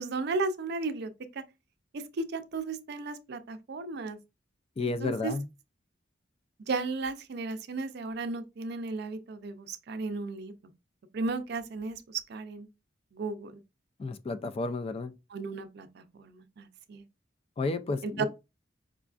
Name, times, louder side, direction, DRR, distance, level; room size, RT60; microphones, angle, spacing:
voice 1, 0.0-1.4 1.9-4.2 4.8-5.3 6.7-10.5 11.1-12.7 13.1-13.6 15.3-17.0 18.0-18.3, right 3 dB, 60° right, 0.4 m, -35 dB
voice 2, 4.8-5.4 14.0-15.1 17.6-18.2, left 3 dB, 30° left, 0.3 m, -32 dB
4.9 x 2.3 x 2.4 m
head